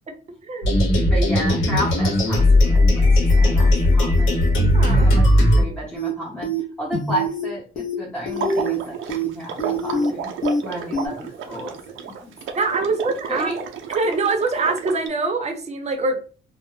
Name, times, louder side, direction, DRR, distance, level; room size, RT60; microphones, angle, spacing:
voice 1, 0.4-0.8 1.1-1.2 4.7-5.1 5.5-5.7 12.6-13.5 13.9-16.2, right 3 dB, 35° right, 4 dB, 0.6 m, -24 dB
sound 1, 0.6-5.6, left 1 dB, 90° left, 0.9 m, -16 dB
voice 2, 1.1-4.4 4.9-6.5 6.8-10.3 10.6-12.6 13.3-13.6, equal, 5° left, -4 dB, 0.7 m, -32 dB
sound 2, 5.9-6.1 6.4-6.6 6.9-7.4 7.8-7.9 8.3-8.8 9.1-9.3 9.6-10.1 10.4-10.6 10.9-11.1, right 1 dB, 45° left, 0.6 m, -24 dB
Water / Liquid, 8.3-15.1, right 6 dB, 75° right, 0.5 m, -32 dB
2.2 x 2.0 x 3.0 m, 0.39 s
cardioid pair, 90°, 20 cm